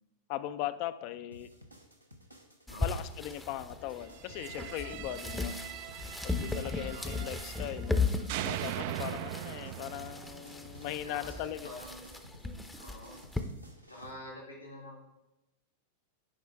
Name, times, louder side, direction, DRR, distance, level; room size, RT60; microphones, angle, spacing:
voice 1, 0.3-1.5 2.8-5.5 6.2-8.1 8.4-11.7, left 12 dB, 45° left, 12 dB, 0.4 m, -39 dB
sound 1, 1.3-14.1, equal, 90° right, 1.0 m, -54 dB
voice 2, 2.7-3.0 6.9-7.1 9.6-9.8 11.0-12.1 12.8-13.2 13.9-15.0, left 1 dB, 85° left, -4 dB, 1.7 m, -47 dB
sound 2, 2.7-13.4, left 3 dB, 5° left, 0.6 m, -37 dB
sound 3, 4.1-8.0 8.3-11.3, right 14 dB, 50° right, 0.3 m, -41 dB
10.0 x 5.0 x 3.4 m, 0.94 s
figure-of-eight pair, 90°, 0 cm